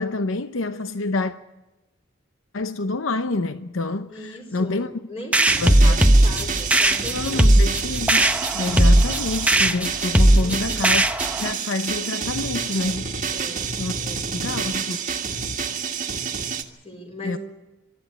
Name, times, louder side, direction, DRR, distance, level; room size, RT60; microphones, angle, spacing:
voice 1, 0.0-1.3 2.5-4.9 5.6-6.2 7.1-11.0 11.4-13.2 13.8-13.9 14.3-15.0 17.2-17.4, left 3 dB, 80° left, 0.8 m, -27 dB
voice 2, 4.1-7.5 10.4-11.0 13.3-13.7 14.0-14.6 16.8-17.4, equal, 30° left, 4.2 m, -38 dB
sound 1, 5.3-11.5, right 1 dB, 5° right, 0.8 m, -18 dB
sound 2, 5.3-16.6, right 6 dB, 40° right, 1.6 m, -29 dB
22.5 x 13.0 x 9.8 m
head